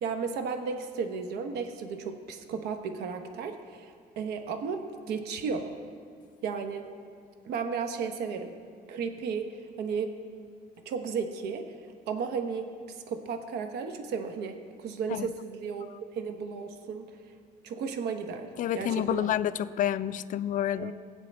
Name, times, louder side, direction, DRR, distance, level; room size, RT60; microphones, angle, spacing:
voice 1, 0.0-5.7 6.4-6.9 7.4-8.5 8.9-10.1 10.8-11.6 12.1-17.2 17.6-19.3 20.7-20.9, right 5 dB, 75° right, 6 dB, 1.0 m, -34 dB
voice 2, 18.6-20.9, left 11 dB, 50° left, 13 dB, 0.4 m, -29 dB
20.5 x 7.9 x 3.4 m, 2.1 s
cardioid pair, 110°, 17 cm